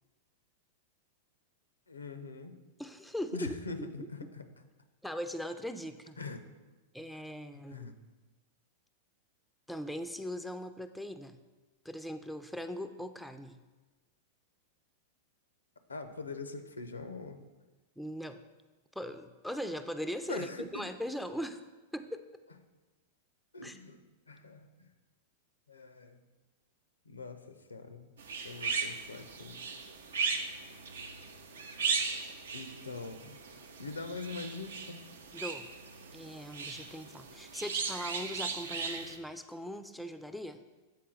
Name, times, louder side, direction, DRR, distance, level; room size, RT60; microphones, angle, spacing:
voice 1, 1.9-2.5 3.3-4.5 6.2-6.5 7.7-8.0 15.9-17.5 20.3-20.9 23.5-24.0 24.3-24.9 25.7-26.2 27.1-28.1 28.4-29.6 32.5-33.4 33.8-35.0, left 3 dB, 85° left, 9 dB, 0.5 m, -43 dB
voice 2, 2.8-3.6 4.0-4.1 5.0-6.2 6.9-7.9 9.7-11.4 11.9-13.6 18.0-18.4 19.0-21.6 21.9-22.2 23.6-23.8 35.3-35.7 36.1-40.6, equal, ahead, 8 dB, 0.4 m, -40 dB
sound 1, 28.2-39.2, right 5 dB, 75° right, 0.5 m, -37 dB
7.5 x 4.2 x 3.7 m, 1.2 s
figure-of-eight pair, 95°, 0 cm